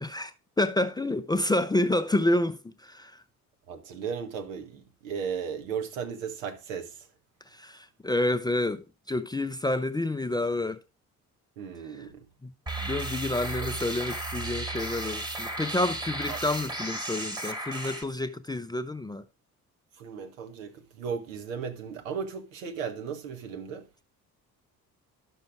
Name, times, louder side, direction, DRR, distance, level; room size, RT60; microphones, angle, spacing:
voice 1, 0.0-3.2 7.5-10.8 11.9-12.0 12.4-12.5 12.8-19.3, left 2 dB, 10° left, 0.6 m, -29 dB
voice 2, 3.7-7.1 11.6-12.3 16.3-16.4 20.0-23.9, right 6 dB, 70° right, 1.5 m, -36 dB
sound 1, 12.7-18.0, right 2 dB, 10° right, 1.6 m, -34 dB
11.5 x 6.3 x 3.5 m
figure-of-eight pair, 50°, 45 cm